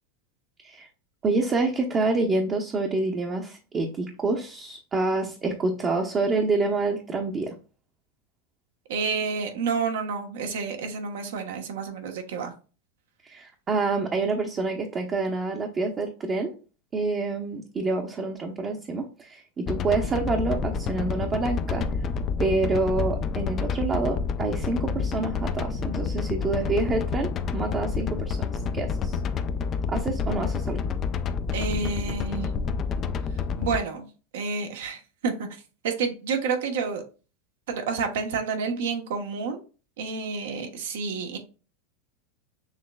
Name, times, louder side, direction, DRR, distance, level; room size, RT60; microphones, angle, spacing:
voice 1, 1.2-7.5 13.2-16.6 16.9-21.9 22.4-29.2 29.9-30.8, right 3 dB, 30° right, 2 dB, 0.8 m, -27 dB
voice 2, 8.9-12.5 31.5-32.5 33.6-34.0 34.3-35.5 35.8-37.0 37.7-39.6 40.0-41.4, right 5 dB, 75° right, 5 dB, 1.0 m, -29 dB
sound 1, 19.7-33.8, left 5 dB, 35° left, 0.4 m, -29 dB
6.4 x 3.0 x 2.3 m, 0.34 s
hypercardioid pair, 105°, 0 cm